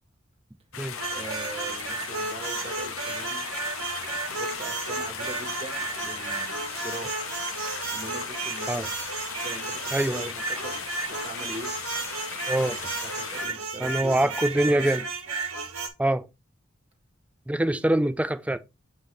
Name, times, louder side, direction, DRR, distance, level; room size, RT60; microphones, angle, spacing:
sound 1, 0.7-13.4, left 7 dB, 70° left, 0.8 m, -37 dB
sound 2, 1.0-15.9, right 4 dB, 85° right, 1.5 m, -33 dB
voice 1, 1.1-3.4 4.3-7.1 7.9-8.9 9.4-11.7 13.0-14.3 14.7-15.0, right 1 dB, 30° right, 1.7 m, -41 dB
voice 2, 9.9-10.3 12.5-12.8 13.8-15.0 16.0-16.3 17.5-18.6, right 1 dB, 5° right, 0.4 m, -24 dB
7.7 x 3.7 x 3.3 m
head